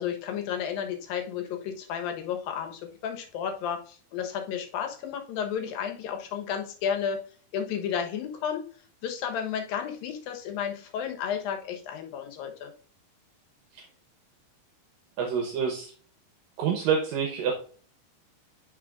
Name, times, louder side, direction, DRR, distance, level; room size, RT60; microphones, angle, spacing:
voice 1, 0.0-7.2 7.5-8.6 9.0-12.7, left 8 dB, 75° left, 4 dB, 2.8 m, -32 dB
voice 2, 15.2-15.9 16.6-17.5, right 7 dB, 75° right, 3 dB, 2.5 m, -27 dB
10.5 x 5.4 x 2.5 m, 0.42 s
omnidirectional pair, 4.4 m